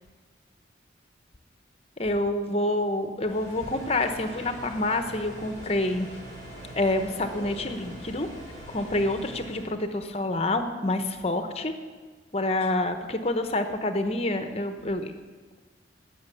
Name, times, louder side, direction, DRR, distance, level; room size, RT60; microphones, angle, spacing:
voice 1, 2.0-6.1 6.8-8.3 8.7-11.7 12.3-15.1, left 2 dB, 35° left, 8 dB, 0.9 m, -27 dB
sound 1, 3.2-9.7, right 1 dB, 45° right, 5.0 m, -43 dB
17.5 x 6.3 x 6.9 m, 1.4 s
head